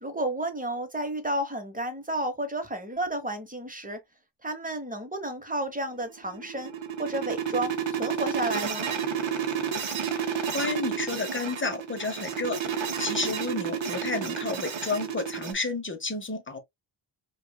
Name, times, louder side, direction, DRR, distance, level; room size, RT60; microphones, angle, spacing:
voice 1, 0.0-4.0 4.4-6.7 7.0-8.9, right 1 dB, 15° right, 1.1 m, -31 dB
sound 1, 6.1-15.5, right 7 dB, 70° right, 1.0 m, -31 dB
voice 2, 10.5-12.6 13.0-16.6, left 3 dB, 25° left, 1.0 m, -31 dB
5.1 x 2.5 x 2.3 m
wide cardioid pair, 105°, 48 cm